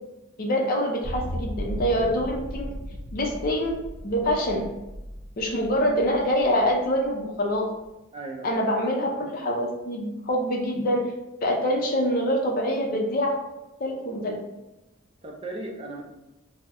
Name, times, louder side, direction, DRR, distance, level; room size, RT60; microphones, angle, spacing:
voice 1, 0.4-2.7 3.1-3.8 4.0-4.6 5.4-7.7 8.4-11.0 11.4-13.3 13.8-14.4, equal, 45° left, 1 dB, 0.5 m, -25 dB
sound 1, 1.0-7.1, equal, 65° right, 0.7 m, -36 dB
voice 2, 8.1-8.7 15.2-16.0, right 2 dB, 30° right, 0 dB, 0.4 m, -36 dB
3.4 x 2.0 x 2.8 m, 0.96 s
head